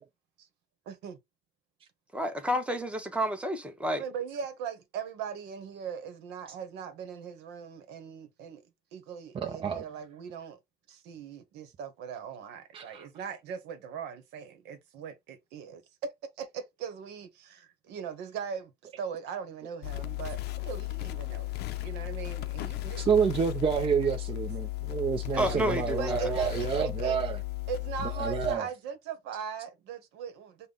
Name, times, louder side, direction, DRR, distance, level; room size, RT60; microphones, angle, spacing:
voice 1, 0.9-1.2 4.0-8.6 8.9-10.6 10.9-16.1 16.4-18.7 19.0-21.5 21.8-23.1 25.3-27.2 27.7-30.7, right 7 dB, 90° right, 0.9 m, -39 dB
voice 2, 2.1-4.0 25.4-26.3, equal, 5° right, 0.9 m, -30 dB
voice 3, 9.3-9.8 12.7-13.1 23.0-27.4 28.2-28.7, right 7 dB, 35° right, 0.5 m, -28 dB
sound 1, 19.8-28.6, left 18 dB, 75° left, 0.5 m, -35 dB
5.3 x 2.1 x 3.6 m
cardioid pair, 110°, 17 cm